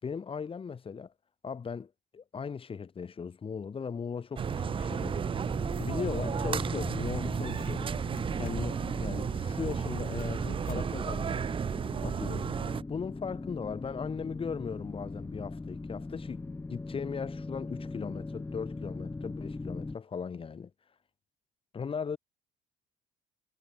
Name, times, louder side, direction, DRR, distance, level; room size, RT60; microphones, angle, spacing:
voice 1, 0.0-1.1 1.4-5.2 5.8-7.9 8.3-11.5 12.0-12.6 12.9-20.7 21.7-22.2, left 6 dB, 30° left, 3.1 m, -38 dB
sound 1, 4.4-12.8, right 7 dB, 30° right, 0.6 m, -33 dB
sound 2, 4.5-20.0, left 3 dB, 15° left, 1.3 m, -41 dB
sound 3, 6.7-6.8 7.0-7.9 8.2-9.0 9.5-10.4 10.6-10.9 11.2-11.3 11.8-11.9, left 10 dB, 60° left, 6.9 m, -48 dB
cardioid pair, 110°, 17 cm